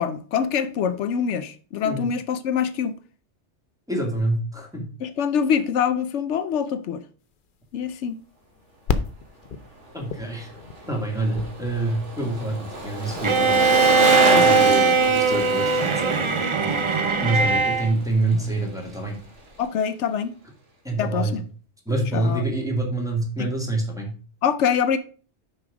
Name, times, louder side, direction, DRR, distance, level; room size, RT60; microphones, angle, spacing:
voice 1, 0.0-3.0 5.0-7.0 7.7-8.2 14.2-14.7 16.7-16.9 18.3-18.5 19.6-20.3 21.0-21.5 22.1-22.5 23.4-23.5 24.4-25.0, left 7 dB, 80° left, 0.9 m, -25 dB
voice 2, 3.9-4.9 9.9-10.5 10.9-13.7 14.4-16.3 17.2-19.1 20.8-21.3 21.9-24.1, right 2 dB, 5° right, 2.1 m, -26 dB
sound 1, 7.4-18.5, left 5 dB, 50° left, 0.8 m, -35 dB
Bicycle, 10.2-18.6 18.9-19.0, right 1 dB, 85° right, 2.3 m, -29 dB
Bowed string instrument, 13.2-17.9, right 4 dB, 35° right, 0.5 m, -19 dB
6.3 x 5.8 x 4.9 m
omnidirectional pair, 1.2 m